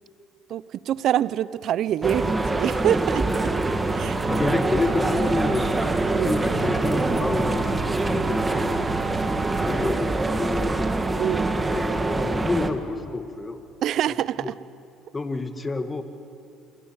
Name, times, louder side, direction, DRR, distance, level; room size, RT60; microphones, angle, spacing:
voice 1, 0.5-4.2 6.1-6.4 11.2-11.6 13.8-14.5, right 11 dB, 65° right, 19 dB, 0.7 m, -26 dB
sound 1, 2.0-12.7, right 2 dB, 20° right, 2.1 m, -24 dB
sound 2, 3.4-9.9, right 10 dB, 45° right, 1.7 m, -36 dB
voice 2, 4.3-9.0 9.7-10.1 10.4-10.9 11.5-13.6 14.4-14.5 15.1-16.0, left 3 dB, 25° left, 8 dB, 2.1 m, -29 dB
26.5 x 24.5 x 8.2 m, 2.7 s
supercardioid pair, 70°, 0 cm